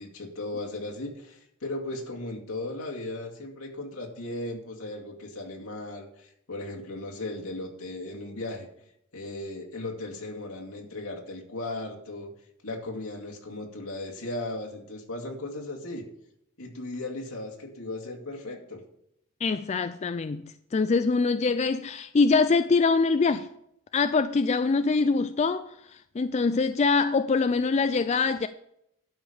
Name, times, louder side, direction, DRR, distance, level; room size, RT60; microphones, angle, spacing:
voice 1, 0.0-8.7 9.1-12.3 12.6-16.1 16.6-18.8, left 2 dB, 80° left, 2.4 m, -36 dB
voice 2, 19.4-23.5 23.9-25.7 26.2-28.5, left 4 dB, 30° left, 0.3 m, -24 dB
12.0 x 5.2 x 6.9 m
head